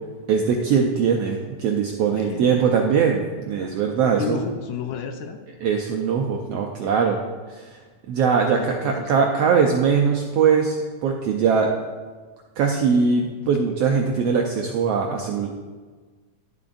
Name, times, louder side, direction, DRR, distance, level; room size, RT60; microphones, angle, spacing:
voice 1, 0.3-4.4 5.6-7.2 7.5-7.8 8.1-11.7 12.6-15.5, right 6 dB, 80° right, 1 dB, 1.4 m, -21 dB
voice 2, 2.1-2.9 3.6-3.8 4.2-5.4 8.5-9.3, left 6 dB, 75° left, 6 dB, 1.9 m, -32 dB
11.5 x 10.5 x 2.6 m, 1.4 s
omnidirectional pair, 3.5 m